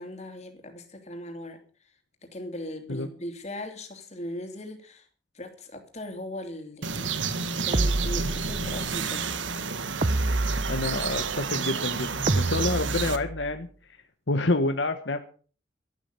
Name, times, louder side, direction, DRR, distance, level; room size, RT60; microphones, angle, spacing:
voice 1, 0.0-1.6 2.2-5.1 5.3-7.1 7.6-9.4, left 1 dB, 35° left, 5 dB, 3.1 m, -39 dB
sound 1, 6.8-13.2, right 6 dB, 85° right, 1.4 m, -30 dB
sound 2, 7.7-8.8 10.0-11.3 12.3-13.5, right 2 dB, 35° right, 0.7 m, -28 dB
voice 2, 10.7-13.7 14.3-15.2, left 2 dB, 70° left, 7 dB, 1.3 m, -28 dB
12.5 x 12.0 x 6.9 m, 0.41 s
head